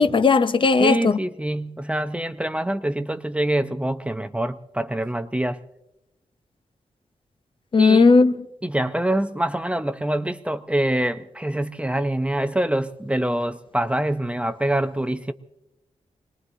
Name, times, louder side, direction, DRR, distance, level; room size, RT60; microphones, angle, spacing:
voice 1, 0.0-1.2 7.7-8.3, left 4 dB, 40° left, 0.5 m, -16 dB
voice 2, 0.8-5.6 7.8-8.1 8.6-15.3, right 1 dB, 10° right, 0.5 m, -25 dB
26.0 x 20.5 x 2.6 m
wide cardioid pair, 150°, 13 cm